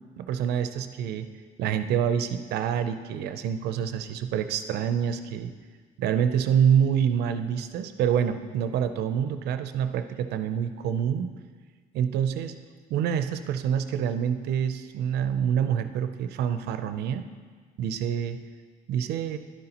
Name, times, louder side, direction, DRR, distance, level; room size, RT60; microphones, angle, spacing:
voice 1, 0.2-1.3 1.6-5.5 6.0-11.3 11.9-12.5 12.9-17.2 17.8-18.4 18.9-19.4, right 8 dB, 75° right, 10 dB, 0.6 m, -26 dB
11.0 x 7.9 x 2.9 m, 1.6 s
cardioid pair, 110°, 17 cm